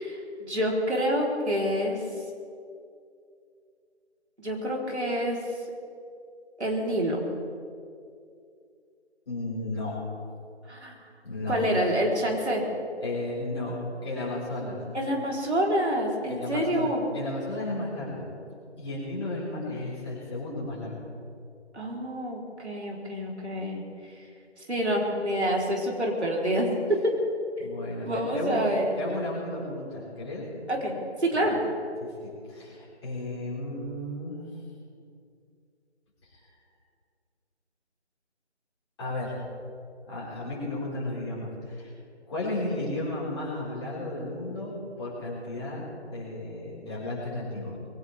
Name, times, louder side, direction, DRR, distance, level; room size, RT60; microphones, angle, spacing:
voice 1, 0.0-2.0 4.4-5.4 6.6-7.2 10.7-11.0 11.5-12.6 14.9-17.0 21.7-24.1 24.7-27.2 27.6-27.7 28.0-28.9 30.7-31.6, equal, 70° right, -2 dB, 4.2 m, -27 dB
voice 2, 9.3-10.0 11.2-11.7 13.0-13.8 14.0-14.8 16.3-18.2 18.8-21.0 27.6-28.6 29.0-30.7 31.3-31.5 32.0-34.5 36.3-36.4 39.0-39.4 40.0-41.9 42.3-45.8 46.1-47.8, left 2 dB, 25° left, -8 dB, 5.2 m, -34 dB
22.0 x 17.5 x 3.6 m, 2.4 s
figure-of-eight pair, 165°, 35 cm